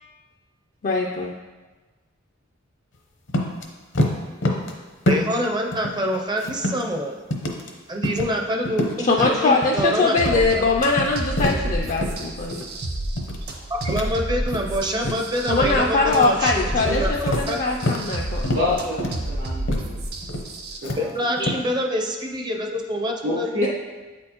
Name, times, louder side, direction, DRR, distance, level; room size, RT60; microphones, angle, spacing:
voice 1, 0.8-1.3 9.0-12.6 15.5-18.4 23.6-23.7, left 3 dB, 40° left, 0 dB, 0.4 m, -22 dB
sound 1, 3.3-3.6 3.9-4.7 5.1-5.5 5.7-6.9 7.3-7.7 8.0-8.4 8.6-9.9 10.3-10.5 10.8-12.2 12.5-12.8 13.2-13.5 13.9-14.8 15.0-15.8 16.1-16.4 16.7-18.1 18.4-18.7 19.0-19.3 19.7-19.9 20.2-20.5 20.8-21.6, left 1 dB, 65° left, 0.8 m, -26 dB
voice 2, 4.4-4.7 5.1-7.2 7.9-10.6 13.7-17.6 21.0-23.5, equal, 20° right, 2 dB, 0.5 m, -26 dB
sound 2, 10.2-20.8, right 1 dB, 55° right, 0.8 m, -30 dB
voice 3, 18.5-19.0 19.2-20.0 20.8-21.1 21.4-21.5 23.2-23.7, left 2 dB, 80° right, -8 dB, 1.1 m, -27 dB
7.9 x 4.3 x 2.9 m, 1.3 s
head